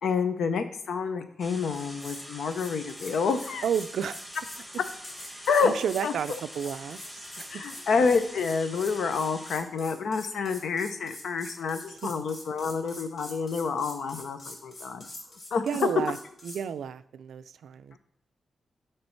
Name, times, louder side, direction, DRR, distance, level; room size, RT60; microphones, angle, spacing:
voice 1, 0.0-3.7 5.5-5.7 6.0-6.1 7.5-15.1 15.5-15.6 17.9-18.0, left 5 dB, 70° left, 9 dB, 0.7 m, -28 dB
sound 1, 1.4-9.6, equal, 5° left, 1.4 m, -45 dB
sound 2, 1.7-2.2 2.5-16.6, left 1 dB, 35° left, 1.5 m, -45 dB
voice 2, 3.6-4.2 5.3-7.6 12.0-12.1 15.7-16.2 16.4-17.9, right 8 dB, 85° right, 14 dB, 0.3 m, -32 dB
9.6 x 3.3 x 4.5 m, 0.72 s
wide cardioid pair, 165°, 0 cm